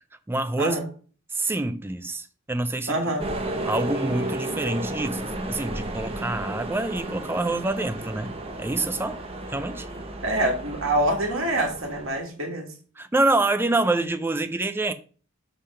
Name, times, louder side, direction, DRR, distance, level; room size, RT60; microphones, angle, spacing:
voice 1, 0.3-0.8 1.3-3.0 3.7-8.3 8.6-9.2 9.5-9.9 13.0-14.9, right 2 dB, 10° right, 0.4 m, -26 dB
voice 2, 2.9-3.2 10.2-12.7, right 1 dB, 75° right, 1.7 m, -25 dB
sound 1, 3.2-12.2, right 1 dB, 30° right, 0.9 m, -33 dB
5.6 x 3.3 x 5.5 m
head